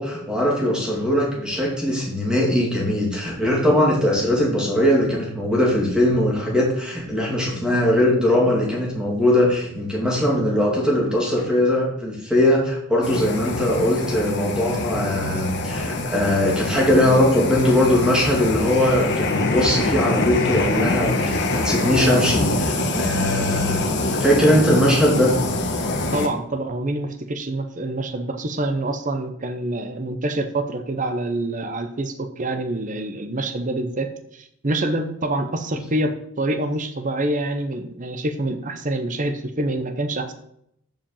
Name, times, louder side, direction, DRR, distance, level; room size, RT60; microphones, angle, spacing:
voice 1, 0.0-25.4, left 1 dB, 5° right, -3 dB, 2.4 m, -20 dB
sound 1, 13.0-26.3, left 2 dB, 55° left, 1.3 m, -24 dB
voice 2, 26.1-40.3, right 2 dB, 35° right, 8 dB, 0.8 m, -26 dB
7.4 x 5.1 x 7.1 m, 0.74 s
head